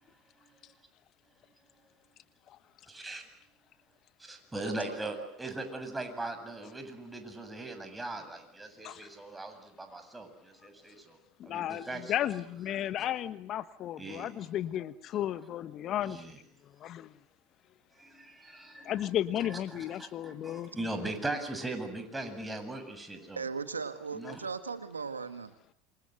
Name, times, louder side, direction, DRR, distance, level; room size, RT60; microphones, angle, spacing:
voice 1, 2.9-3.3 4.2-11.2 11.4-12.1 12.7-12.8 14.0-14.3 16.0-16.4 18.0-19.1 19.4-23.4 24.1-24.4, right 2 dB, 10° right, 7 dB, 7.8 m, -40 dB
voice 2, 4.6-5.3 23.4-25.5, right 5 dB, 90° right, 11 dB, 1.7 m, -38 dB
voice 3, 11.4-16.2 16.8-17.1 18.8-20.7, left 11 dB, 45° left, 14 dB, 1.3 m, -34 dB
28.0 x 26.0 x 8.0 m, 0.70 s
hypercardioid pair, 75°, 0 cm